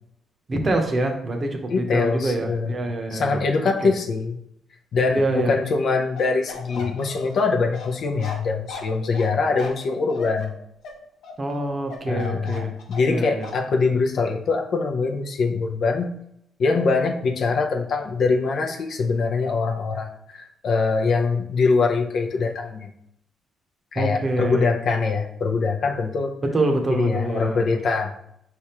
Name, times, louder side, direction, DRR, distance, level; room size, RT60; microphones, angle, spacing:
voice 1, 0.5-3.9 5.1-5.5 11.4-12.7 13.1-13.5 23.9-24.7 26.5-27.8, right 2 dB, 35° right, 3 dB, 0.8 m, -25 dB
voice 2, 1.7-2.7 3.1-4.4 4.9-10.5 12.1-16.1 16.6-22.9 23.9-26.4 26.9-28.2, left 4 dB, 60° left, 2 dB, 0.6 m, -23 dB
Bark, 6.2-13.2 13.4-13.6, left 4 dB, 85° left, 0.9 m, -38 dB
4.6 x 3.5 x 2.9 m, 0.75 s
cardioid pair, 90°, 0 cm